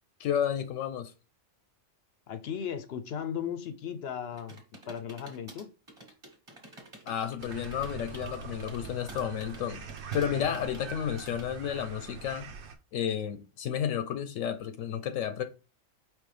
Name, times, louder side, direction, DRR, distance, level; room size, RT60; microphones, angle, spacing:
voice 1, 0.2-1.1 7.1-9.8 10.1-12.5 12.9-15.4, left 9 dB, 85° left, 1.0 m, -32 dB
voice 2, 2.3-4.6 4.9-5.7, left 8 dB, 65° left, 0.7 m, -36 dB
sound 1, 4.3-11.4, right 1 dB, 25° right, 1.1 m, -50 dB
sound 2, 7.4-12.7, right 5 dB, 65° right, 1.0 m, -42 dB
5.2 x 3.1 x 3.2 m
omnidirectional pair, 1.3 m